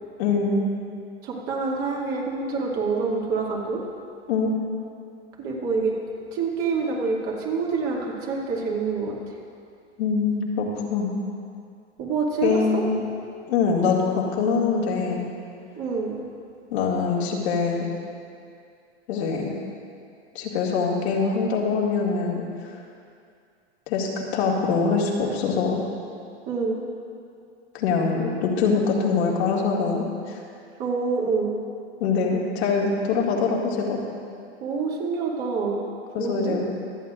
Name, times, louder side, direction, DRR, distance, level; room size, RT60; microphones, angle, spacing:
voice 1, 0.2-0.6 4.3-4.5 10.0-11.1 12.4-13.0 13.5-15.2 16.7-17.9 19.1-19.5 20.3-22.5 23.9-25.8 27.7-30.4 32.0-34.0 36.1-36.6, left 5 dB, 70° left, -3 dB, 2.2 m, -23 dB
voice 2, 1.2-3.8 5.4-5.9 6.3-9.1 12.0-12.8 15.7-16.2 26.5-26.8 30.8-31.5 34.6-35.8 36.2-36.6, right 4 dB, 45° right, -3 dB, 2.5 m, -26 dB
25.0 x 8.4 x 2.5 m, 2.4 s
hypercardioid pair, 125°, 34 cm